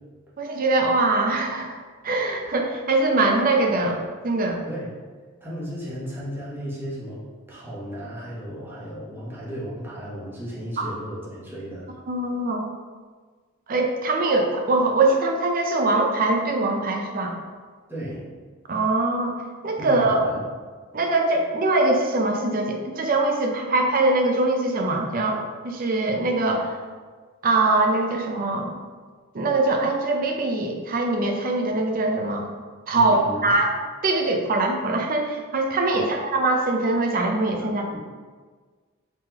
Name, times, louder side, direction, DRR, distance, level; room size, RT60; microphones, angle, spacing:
voice 1, 0.4-1.7 2.0-4.6 10.8-10.9 12.1-12.7 13.7-17.4 18.7-19.4 19.6-20.2 20.9-26.7 27.4-28.8 29.3-32.5 32.9-33.7 34.0-38.0, right 2 dB, 40° right, 2 dB, 0.5 m, -22 dB
voice 2, 5.4-11.9 17.9-18.2 19.8-20.4 32.9-33.5 35.9-36.1 37.6-38.0, equal, 10° right, -7 dB, 0.8 m, -34 dB
3.7 x 3.0 x 2.9 m, 1.5 s
head